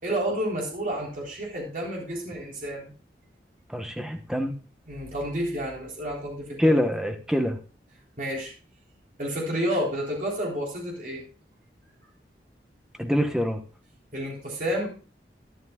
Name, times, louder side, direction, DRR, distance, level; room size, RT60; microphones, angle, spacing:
voice 1, 0.0-2.9 4.9-6.8 8.2-8.5 9.2-11.2 14.1-14.9, equal, 50° right, -2 dB, 3.7 m, -30 dB
voice 2, 3.7-4.6 6.6-7.6 13.0-13.6, equal, 5° right, 5 dB, 1.1 m, -25 dB
13.0 x 11.5 x 2.4 m, 0.36 s
head